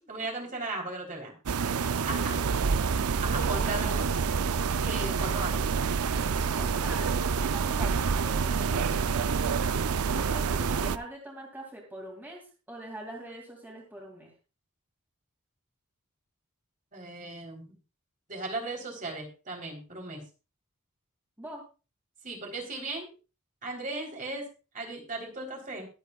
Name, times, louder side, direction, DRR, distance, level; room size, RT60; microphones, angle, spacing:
voice 1, 0.1-1.3 2.0-2.3 3.0-4.1 4.8-5.5 16.9-17.6 18.3-20.2 22.2-23.1 23.6-24.5 24.7-25.9, right 2 dB, 35° right, 0 dB, 3.6 m, -36 dB
sound 1, 1.5-11.0, right 5 dB, 90° right, 0.6 m, -27 dB
voice 2, 5.2-5.6 6.6-9.0 10.1-14.3 21.4-21.6, right 1 dB, 10° right, -1 dB, 2.6 m, -44 dB
22.0 x 8.3 x 2.4 m, 0.31 s
head